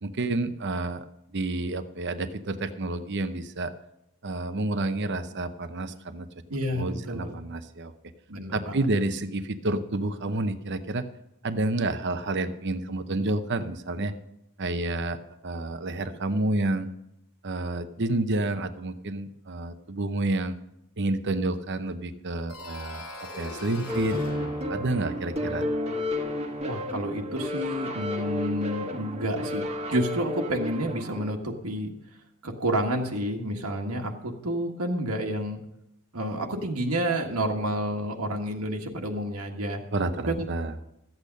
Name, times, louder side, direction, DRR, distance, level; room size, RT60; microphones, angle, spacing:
voice 1, 0.0-1.0 1.3-3.7 4.2-6.3 6.7-7.9 8.5-11.1 11.4-14.1 14.6-16.9 17.4-20.6 21.0-25.6 39.9-40.7, right 2 dB, 50° right, 10 dB, 0.8 m, -29 dB
voice 2, 6.5-7.3 8.3-8.8 26.6-31.9 32.4-35.6 36.1-39.8 40.3-40.5, equal, 75° right, 1 dB, 1.5 m, -29 dB
sound 1, 22.5-27.2, left 1 dB, 75° left, 2.0 m, -43 dB
sound 2, 23.9-31.3, left 1 dB, 30° right, 1.5 m, -32 dB
13.5 x 8.5 x 5.3 m, 0.84 s
head